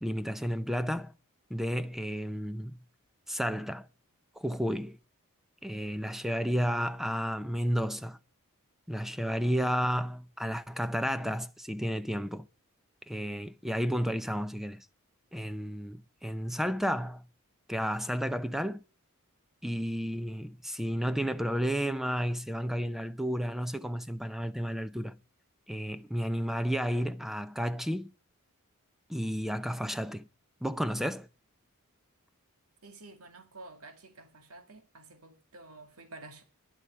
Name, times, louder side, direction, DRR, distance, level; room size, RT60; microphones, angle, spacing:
voice 1, 0.0-1.1 1.5-2.8 3.3-3.9 4.4-5.0 5.6-8.2 8.9-12.5 13.1-14.9 15.3-17.3 17.7-18.8 19.6-25.2 25.7-28.1 29.1-30.3 30.6-31.3, equal, ahead, 0.6 m, -32 dB
voice 2, 32.8-36.4, right 2 dB, 75° right, 2.1 m, -50 dB
10.5 x 7.8 x 9.9 m
head